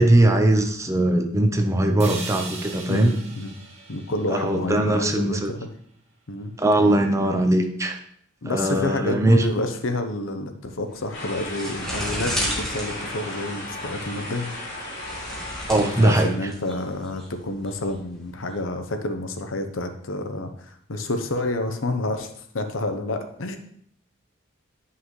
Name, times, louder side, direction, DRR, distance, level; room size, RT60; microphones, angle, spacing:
voice 1, 0.0-3.1 4.3-5.5 6.6-8.0 8.5-9.5 15.7-16.5, right 1 dB, 15° right, 5 dB, 0.6 m, -20 dB
sound 1, 2.0-6.0, right 3 dB, 35° right, 1.3 m, -40 dB
voice 2, 2.9-3.5 3.9-5.7 6.3-6.5 8.4-14.5 15.8-22.3 22.5-23.6, left 2 dB, 80° left, 7 dB, 0.8 m, -29 dB
sound 2, 10.9-18.5, equal, ahead, 1.9 m, -34 dB
sound 3, 11.1-16.3, left 1 dB, 55° left, 2.8 m, -35 dB
9.8 x 5.6 x 3.2 m, 0.66 s
head